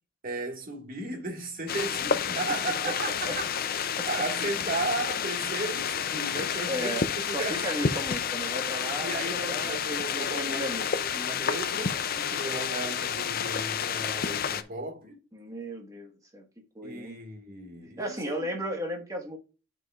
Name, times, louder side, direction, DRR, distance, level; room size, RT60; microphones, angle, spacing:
voice 1, 0.2-3.6 4.1-8.0 9.0-15.2 16.8-18.5, right 2 dB, 45° right, 1.9 m, -35 dB
sound 1, 1.7-14.6, left 7 dB, 50° left, 0.5 m, -30 dB
voice 2, 6.6-9.2 9.5-10.9 15.3-16.4 16.7-17.2 18.0-19.4, equal, 20° right, 1.6 m, -35 dB
11.0 x 4.7 x 2.5 m
head